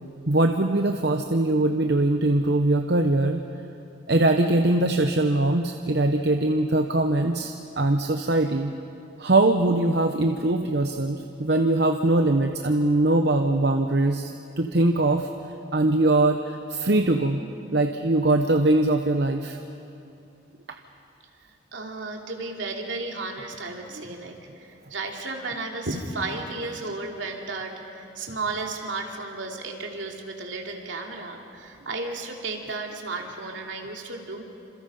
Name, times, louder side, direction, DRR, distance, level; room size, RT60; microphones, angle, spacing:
voice 1, 0.3-3.4 4.1-8.7 9.2-15.3 15.7-17.4 17.7-19.6 20.7-20.8, right 2 dB, 60° right, 5 dB, 0.9 m, -22 dB
voice 2, 21.7-34.4, right 3 dB, 75° right, 1 dB, 2.9 m, -33 dB
29.0 x 27.0 x 5.5 m, 2.6 s
head